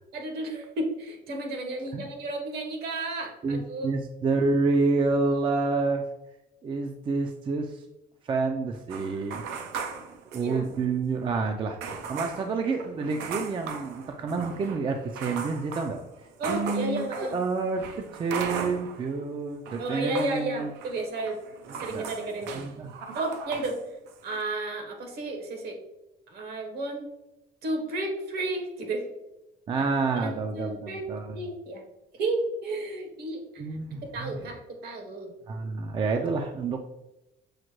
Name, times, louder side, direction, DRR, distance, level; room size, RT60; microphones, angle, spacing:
voice 1, 0.1-3.9 10.4-10.7 16.4-17.4 19.8-21.4 21.8-22.7 23.1-23.8 24.2-25.8 26.3-27.0 27.6-29.0 29.7-29.9 30.2-31.8 32.2-33.4 34.1-35.3, right 2 dB, 65° right, 3 dB, 1.0 m, -32 dB
voice 2, 3.4-6.0 6.6-7.7 8.2-9.4 9.9-10.0 10.3-16.0 16.5-17.9 18.2-20.7 21.9-22.1 22.5-22.9 29.7-31.4 33.6-34.5 35.5-36.8, right 4 dB, 30° right, 5 dB, 0.3 m, -28 dB
sound 1, 8.9-10.9 11.2-11.3 11.8-19.2 19.5-23.8 24.1-24.4, right 5 dB, 90° right, 0.5 m, -38 dB
6.3 x 2.1 x 3.0 m, 0.92 s
cardioid pair, 110°, 17 cm